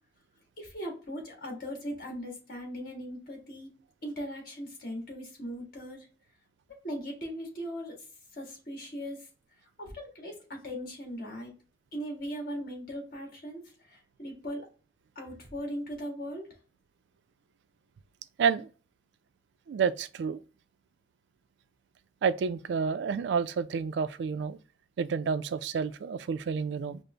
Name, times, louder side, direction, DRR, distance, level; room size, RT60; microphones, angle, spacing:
voice 1, 0.6-3.7 4.0-6.1 6.8-7.9 8.3-9.2 9.8-11.5 11.9-14.7 15.1-16.5, equal, 55° left, 1.6 m, -39 dB
voice 2, 19.7-20.4 22.2-24.6 25.0-27.0, right 6 dB, 75° right, 0.3 m, -29 dB
5.1 x 2.0 x 3.3 m
head